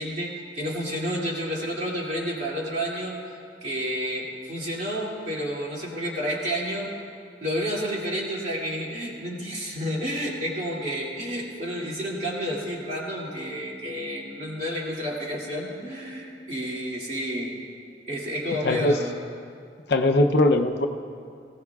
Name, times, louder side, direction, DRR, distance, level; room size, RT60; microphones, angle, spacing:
voice 1, 0.0-3.3 3.6-6.9 7.4-17.6 18.1-19.2, equal, 40° right, -4 dB, 2.5 m, -30 dB
voice 2, 18.6-19.1 19.9-20.9, left 1 dB, 65° left, 5 dB, 0.6 m, -20 dB
19.0 x 16.5 x 2.4 m, 2.3 s
head